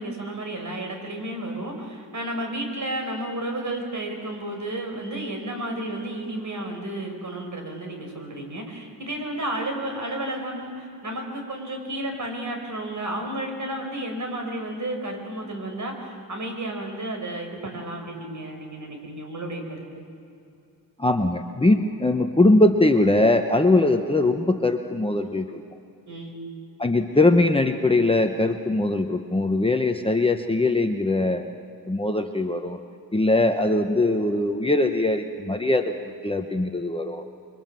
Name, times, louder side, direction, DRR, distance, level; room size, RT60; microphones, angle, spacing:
voice 1, 0.0-20.0 26.1-26.5, right 1 dB, 50° right, 3 dB, 5.1 m, -32 dB
voice 2, 21.0-25.6 26.8-31.4 31.9-32.8 33.1-35.9 36.2-37.2, left 2 dB, 15° left, 5 dB, 0.9 m, -21 dB
26.5 x 23.5 x 7.6 m, 2.6 s
wide cardioid pair, 145°, 38 cm